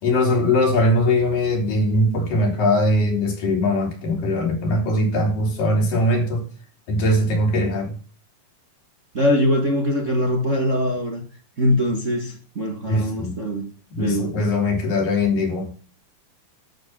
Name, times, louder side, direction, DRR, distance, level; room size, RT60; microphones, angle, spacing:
voice 1, 0.0-6.5 6.9-7.9 12.9-13.4 13.9-15.8, left 1 dB, 80° left, 5.3 m, -21 dB
voice 2, 9.1-11.2 11.6-13.7 14.0-14.3, equal, 30° right, 1.4 m, -22 dB
11.5 x 8.2 x 6.0 m
omnidirectional pair, 3.8 m